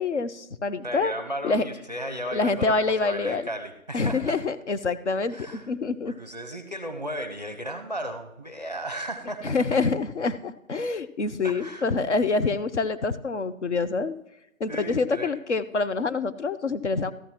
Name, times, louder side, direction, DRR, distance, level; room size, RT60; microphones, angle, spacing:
voice 1, 0.0-1.1 1.4-1.6 2.3-3.4 3.9-6.1 9.4-14.1 14.6-17.1, left 3 dB, 55° left, 12 dB, 0.6 m, -26 dB
voice 2, 0.8-4.4 5.3-5.7 6.0-9.6 11.4-11.9 14.7-15.4, equal, 30° right, 7 dB, 0.6 m, -35 dB
14.0 x 11.0 x 2.9 m, 0.88 s
figure-of-eight pair, 175°, 42 cm